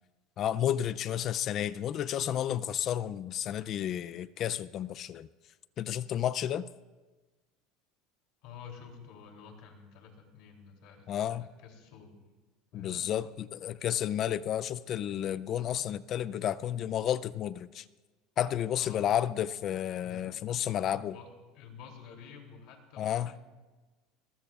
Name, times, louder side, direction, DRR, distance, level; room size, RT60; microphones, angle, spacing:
voice 1, 0.4-5.3 5.8-6.7 11.1-11.5 12.7-17.8 18.4-21.1 23.0-23.3, left 10 dB, 40° left, 16 dB, 0.4 m, -31 dB
voice 2, 8.4-11.1 11.4-12.2 12.7-13.4 18.8-19.1 20.0-20.4 20.9-23.4, left 6 dB, 65° left, 2 dB, 3.0 m, -50 dB
21.0 x 20.0 x 2.4 m, 1.2 s
supercardioid pair, 135°, 0 cm